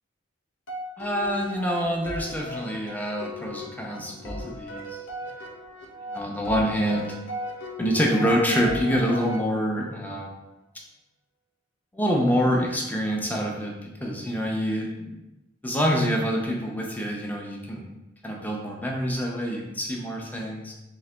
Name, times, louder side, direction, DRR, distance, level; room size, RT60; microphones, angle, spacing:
sound 1, 0.7-10.0, left 1 dB, 85° left, 0.7 m, -37 dB
voice 1, 1.0-5.0 6.1-7.2 7.8-10.3 11.9-15.2 15.6-17.9 18.2-20.7, equal, 10° left, 0 dB, 0.5 m, -26 dB
3.9 x 2.9 x 3.3 m, 0.99 s
head